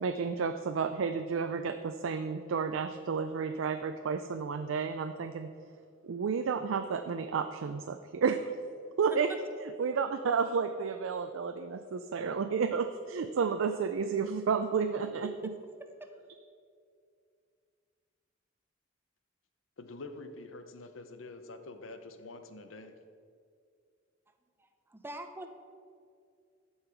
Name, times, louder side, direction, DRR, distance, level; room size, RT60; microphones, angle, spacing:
voice 1, 0.0-5.5 6.0-8.4 9.0-9.3 9.8-15.3, right 5 dB, 90° right, 8 dB, 0.4 m, -31 dB
voice 2, 19.8-23.0, left 2 dB, 85° left, 8 dB, 0.7 m, -46 dB
voice 3, 24.6-25.5, right 1 dB, 10° right, 6 dB, 0.6 m, -44 dB
11.5 x 5.6 x 4.5 m, 2.3 s
head